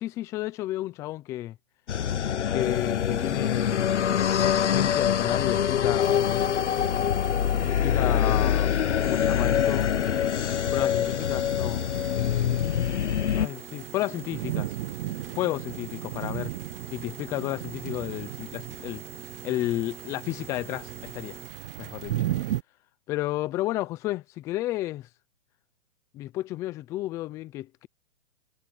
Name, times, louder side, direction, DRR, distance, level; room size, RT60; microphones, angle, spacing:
voice 1, 0.0-1.6 2.5-6.8 7.6-9.9 10.7-11.8 12.1-13.0 13.4-14.8 15.4-16.5 16.9-19.0 19.4-21.4 21.8-22.1 23.1-25.1 26.1-27.9, left 15 dB, 10° left, 0.3 m, -32 dB
sound 1, 1.9-13.5, left 9 dB, 85° left, 0.8 m, -25 dB
sound 2, 2.6-21.5, right 3 dB, 5° right, 5.3 m, -47 dB
sound 3, 6.0-22.6, right 14 dB, 55° right, 1.1 m, -37 dB
hypercardioid pair, 135°, 34 cm